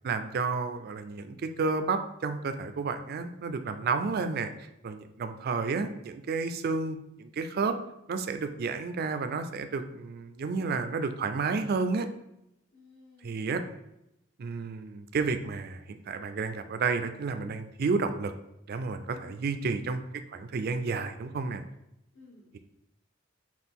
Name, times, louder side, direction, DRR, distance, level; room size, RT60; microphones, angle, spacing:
voice 1, 0.0-4.5 4.8-7.8 8.1-12.1 13.2-13.6 14.4-18.3 18.7-20.0 20.3-21.6, right 4 dB, 50° right, 9 dB, 0.4 m, -31 dB
voice 2, 12.7-13.4 19.2-19.5 22.1-22.6, left 2 dB, 65° left, -6 dB, 1.3 m, -56 dB
5.9 x 2.4 x 3.5 m, 0.85 s
head